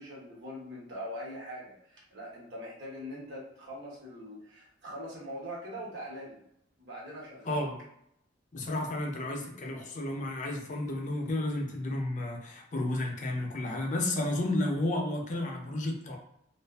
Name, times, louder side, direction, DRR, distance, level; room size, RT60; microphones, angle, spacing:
voice 1, 0.0-6.4 6.8-7.6, equal, 70° right, -4 dB, 1.0 m, -42 dB
voice 2, 7.4-7.8 8.5-16.2, left 1 dB, 45° left, 1 dB, 0.5 m, -32 dB
2.5 x 2.3 x 2.2 m, 0.76 s
head